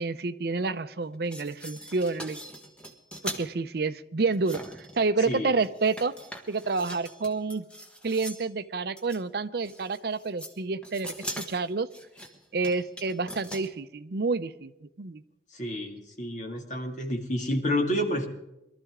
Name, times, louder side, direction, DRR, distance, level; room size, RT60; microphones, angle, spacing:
voice 1, 0.0-2.4 3.2-6.1 6.5-7.7 8.0-11.9 12.5-15.2, right 4 dB, 55° right, 13 dB, 0.6 m, -29 dB
sound 1, 1.1-3.5 4.3-5.3 5.6-8.5 9.0-9.2 9.6-10.6 10.8-13.7, equal, 5° left, 1.2 m, -41 dB
voice 2, 15.5-18.3, equal, 40° left, 2 dB, 2.2 m, -29 dB
22.5 x 13.0 x 3.6 m, 0.92 s
head